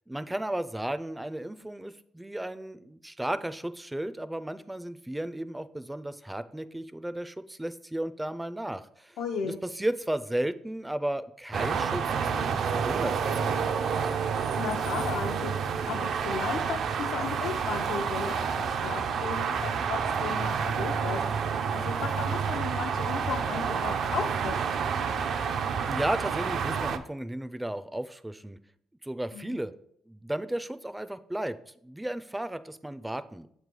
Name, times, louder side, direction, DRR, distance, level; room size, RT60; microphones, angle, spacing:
voice 1, 0.1-9.2 9.4-13.9 25.9-28.6 29.0-29.7 30.1-33.5, right 1 dB, 10° right, 13 dB, 0.4 m, -34 dB
voice 2, 9.2-9.6 14.5-24.6 29.3-29.6, left 6 dB, 85° left, 1 dB, 0.6 m, -35 dB
sound 1, 11.5-27.0, right 6 dB, 65° right, 0.5 m, -29 dB
7.3 x 3.2 x 5.2 m, 0.70 s
cardioid pair, 90°, 0 cm